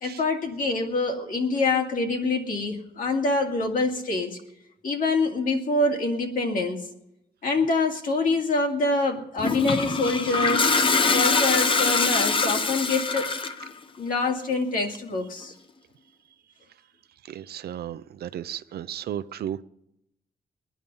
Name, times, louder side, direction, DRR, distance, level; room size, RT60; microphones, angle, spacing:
voice 1, 0.0-4.4 4.8-6.8 7.4-10.7 11.1-13.3 14.0-15.5, left 3 dB, 60° left, 2 dB, 2.2 m, -25 dB
Toilet flush, 9.4-13.7, left 4 dB, 30° left, 0.7 m, -23 dB
voice 2, 17.2-19.6, right 10 dB, 80° right, 13 dB, 0.6 m, -34 dB
21.0 x 10.0 x 5.4 m, 0.83 s
wide cardioid pair, 155°, 16 cm